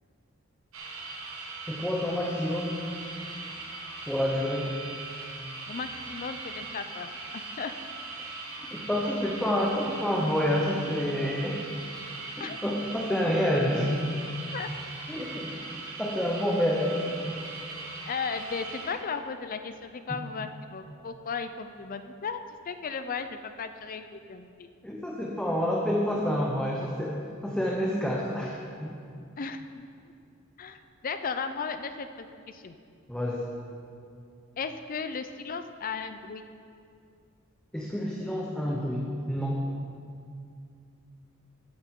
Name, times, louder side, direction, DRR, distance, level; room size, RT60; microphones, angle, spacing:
sound 1, 0.7-19.0, right 3 dB, 80° right, 1.4 m, -40 dB
voice 1, 1.7-2.7 4.1-4.7 8.7-11.6 12.4-14.3 15.1-15.5 16.0-17.4 20.1-20.2 24.8-29.0 33.1-33.4 37.7-39.6, equal, 5° left, -3 dB, 0.9 m, -28 dB
voice 2, 5.7-7.7 9.0-9.1 12.4-12.6 14.5-14.7 18.1-22.4 22.7-24.7 29.4-29.9 30.6-32.7 34.6-36.4, left 5 dB, 40° left, 9 dB, 0.5 m, -36 dB
15.0 x 9.1 x 3.7 m, 2.4 s
head